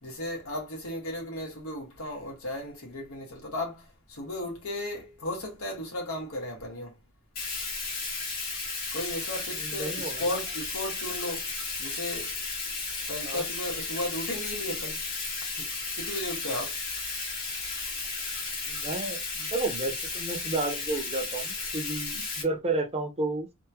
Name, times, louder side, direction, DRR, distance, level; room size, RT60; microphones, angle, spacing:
voice 1, 0.0-7.0 8.9-12.4 13.1-15.0 15.5-16.8, left 1 dB, 80° left, 1.6 m, -35 dB
Bathtub (filling or washing), 7.4-22.4, left 3 dB, 45° left, 1.9 m, -34 dB
voice 2, 9.6-10.4 13.2-13.4 18.7-23.5, right 2 dB, 30° right, 0.7 m, -32 dB
3.5 x 2.3 x 2.9 m
head